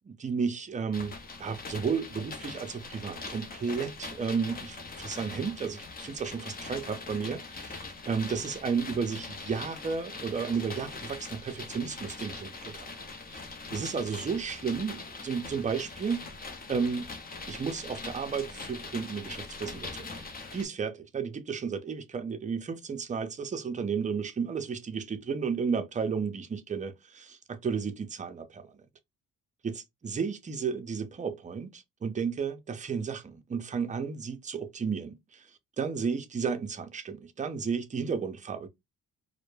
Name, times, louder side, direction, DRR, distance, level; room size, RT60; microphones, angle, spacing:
voice 1, 0.1-7.8 8.1-12.9 13.3-16.2 16.7-17.1 17.5-20.2 20.5-28.7 29.6-35.5 35.8-38.7, right 5 dB, 25° right, 0.5 m, -33 dB
sound 1, 0.9-20.7, left 3 dB, 30° left, 0.6 m, -42 dB
2.1 x 2.1 x 3.1 m
cardioid pair, 90°, 30 cm